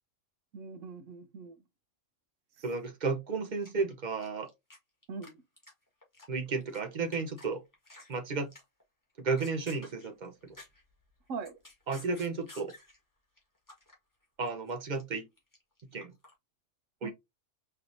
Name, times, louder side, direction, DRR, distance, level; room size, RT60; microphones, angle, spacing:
voice 1, 0.5-1.5 5.1-5.3 11.3-11.6 17.0-17.1, right 4 dB, 70° right, 1.2 m, -41 dB
voice 2, 2.6-4.5 6.3-7.6 8.1-8.5 9.2-10.5 11.9-12.7 14.4-15.3 15.9-16.1 17.0-17.1, right 4 dB, 40° right, 0.8 m, -33 dB
sound 1, 3.6-4.8 5.0-5.3 5.6-6.8 7.1-7.5 7.7-8.1 8.5-8.8 9.2-10.9 11.3-13.0 13.4-14.0 14.2-16.3, left 2 dB, 15° left, 1.5 m, -53 dB
4.5 x 3.4 x 2.6 m
omnidirectional pair, 1.4 m